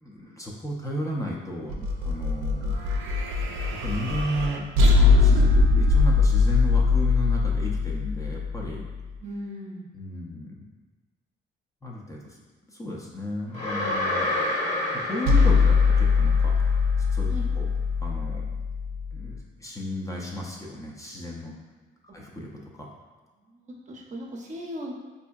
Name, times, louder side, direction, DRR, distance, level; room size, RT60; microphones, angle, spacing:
voice 1, 0.0-2.8 3.5-4.7 4.9-5.5 5.8-8.8 9.9-10.7 11.8-12.4 12.7-14.3 15.0-17.7 18.0-18.5 19.1-21.5 22.1-22.9, equal, 15° left, -3 dB, 0.6 m, -34 dB
sound 1, 1.7-9.0 15.3-19.4, left 4 dB, 90° right, 0.5 m, -21 dB
voice 2, 9.2-9.9 17.3-17.5 22.1-22.2 23.3-24.9, equal, 40° right, -2 dB, 0.6 m, -38 dB
sound 2, 13.5-16.6, left 1 dB, 35° left, 1.1 m, -29 dB
4.2 x 2.6 x 2.3 m, 1.3 s
cardioid pair, 90°, 20 cm